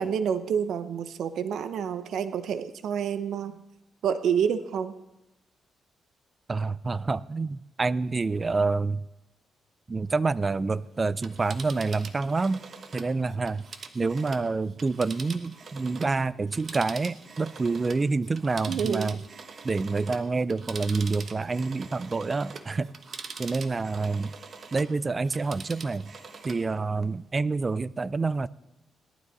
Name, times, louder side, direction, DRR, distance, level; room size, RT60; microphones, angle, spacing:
voice 1, 0.0-3.6 4.0-4.9 18.7-19.2, right 7 dB, 75° right, 11 dB, 0.7 m, -28 dB
voice 2, 6.5-9.0 9.9-12.6 12.9-13.6 13.9-19.2 19.6-22.9 23.4-24.3 24.7-26.1 26.4-28.5, right 3 dB, 25° right, 18 dB, 0.4 m, -27 dB
Telephone, 11.1-16.2 16.5-24.9 25.2-26.7 27.0-27.1, right 5 dB, 45° right, 1.2 m, -43 dB
18.0 x 12.0 x 4.0 m, 0.93 s
cardioid pair, 110°, 0 cm